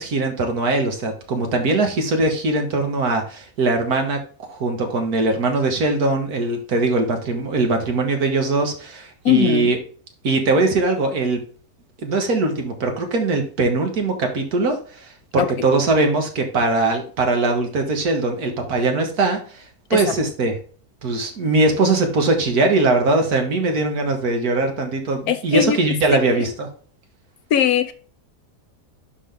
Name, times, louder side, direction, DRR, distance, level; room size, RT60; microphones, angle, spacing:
voice 1, 0.0-4.2 4.5-9.8 10.2-11.4 12.0-19.6 19.9-20.6 21.0-26.7, right 2 dB, 70° right, 4 dB, 2.0 m, -21 dB
voice 2, 9.2-9.7 15.4-15.5 19.9-20.0 25.3-25.8 26.1-26.3 27.5-27.9, left 10 dB, 70° left, 10 dB, 1.2 m, -19 dB
11.0 x 4.0 x 3.5 m, 0.42 s
omnidirectional pair, 1.7 m